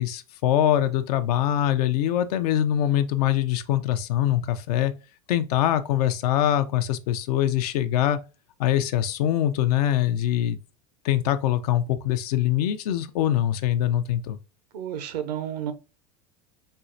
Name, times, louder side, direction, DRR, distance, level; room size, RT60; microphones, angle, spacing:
voice 1, 0.0-4.9 5.3-8.2 8.6-10.6 11.0-14.4, left 11 dB, 75° left, 0.5 m, -23 dB
voice 2, 14.7-15.7, right 10 dB, 85° right, 0.6 m, -31 dB
4.4 x 2.1 x 2.5 m
hypercardioid pair, 105°, 20 cm